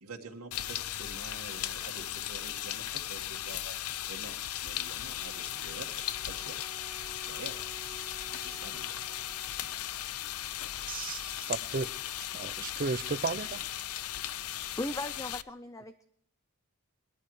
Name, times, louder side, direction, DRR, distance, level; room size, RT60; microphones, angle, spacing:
voice 1, 0.0-5.9 6.2-6.5 7.2-7.6 8.4-9.2, right 3 dB, 80° right, 0 dB, 1.8 m, -47 dB
sound 1, 0.5-15.4, left 12 dB, 75° left, 0.5 m, -37 dB
Wind instrument woodwind instrument, 5.1-10.0, right 2 dB, 15° right, 2.0 m, -54 dB
voice 2, 10.8-11.9 12.3-13.7, right 4 dB, 40° right, 16 dB, 0.5 m, -34 dB
voice 3, 14.8-16.0, left 1 dB, 15° left, 10 dB, 0.5 m, -37 dB
20.5 x 13.5 x 3.2 m, 0.70 s
head